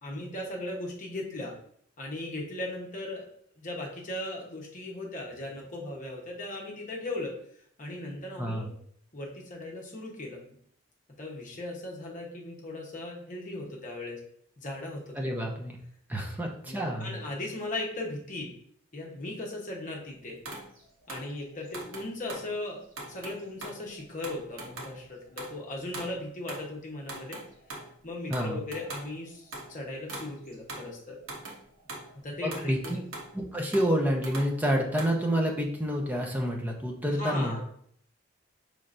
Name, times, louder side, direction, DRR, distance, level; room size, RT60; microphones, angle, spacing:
voice 1, 0.0-1.5 2.0-3.3 3.6-7.3 7.8-8.7 9.1-10.4 11.2-14.2 14.6-15.3 16.7-18.5 18.9-20.4 21.1-27.4 28.0-31.2 32.1-33.0 37.2-37.6, left 2 dB, 40° left, -1 dB, 1.0 m, -38 dB
voice 2, 15.2-15.8 16.1-17.1 28.3-28.6 32.4-33.0 33.3-37.6, equal, 10° right, 0 dB, 0.6 m, -28 dB
sound 1, 20.5-22.5 22.9-26.2 26.5-26.7 27.0-27.9 28.3-29.7 30.1-30.9 31.2-32.1 32.5-33.3 33.7-35.2, right 2 dB, 85° right, 1.1 m, -42 dB
5.6 x 3.2 x 2.5 m, 0.65 s
head